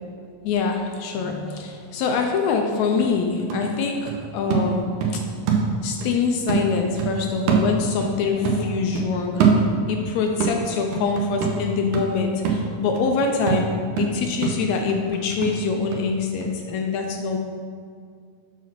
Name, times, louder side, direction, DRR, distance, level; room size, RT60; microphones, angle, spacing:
voice 1, 0.4-5.2 5.8-9.5 9.8-17.4, left 4 dB, 80° left, 3 dB, 1.8 m, -24 dB
sound 1, 2.5-2.6 3.0-6.2 6.5-8.2 8.4-10.1 10.4-16.1 16.4-16.5, right 5 dB, 85° right, 2.3 m, -24 dB
7.1 x 4.2 x 5.9 m, 2.2 s
omnidirectional pair, 3.4 m